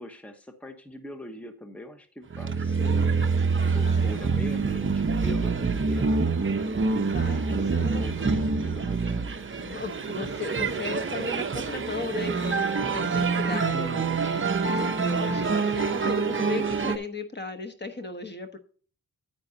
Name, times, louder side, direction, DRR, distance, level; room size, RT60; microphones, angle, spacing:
voice 1, 0.0-3.1 3.5-6.1 7.6-9.4 13.7-14.2, left 1 dB, 5° left, 7 dB, 1.0 m, -41 dB
sound 1, 2.3-17.0, right 4 dB, 30° right, 0.9 m, -26 dB
voice 2, 3.8-4.2 7.0-8.0 8.3-8.4 9.6-18.6, left 3 dB, 30° left, 7 dB, 1.1 m, -36 dB
9.6 x 9.2 x 2.8 m, 0.42 s
wide cardioid pair, 130°, 38 cm